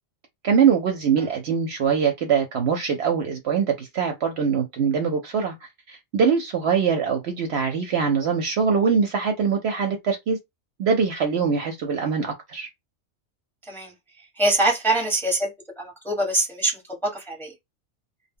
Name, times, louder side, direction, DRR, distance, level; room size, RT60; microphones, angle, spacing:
voice 1, 0.4-10.4 10.8-12.7, right 6 dB, 65° right, 0.8 m, -23 dB
voice 2, 13.6-13.9 14.4-17.5, right 1 dB, ahead, 0.8 m, -24 dB
2.1 x 2.1 x 3.4 m
omnidirectional pair, 1.3 m